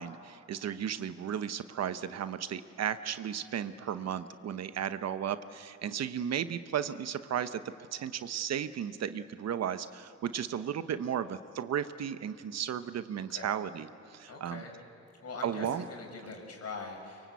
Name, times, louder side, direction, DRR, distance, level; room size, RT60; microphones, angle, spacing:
voice 1, 0.0-7.6 7.9-14.6 15.4-15.8, right 9 dB, 60° right, 12 dB, 1.0 m, -34 dB
voice 2, 14.3-14.7 15.2-17.3, left 3 dB, 55° left, 2 dB, 6.1 m, -42 dB
23.5 x 23.5 x 8.4 m, 2.7 s
cardioid pair, 90°, 30 cm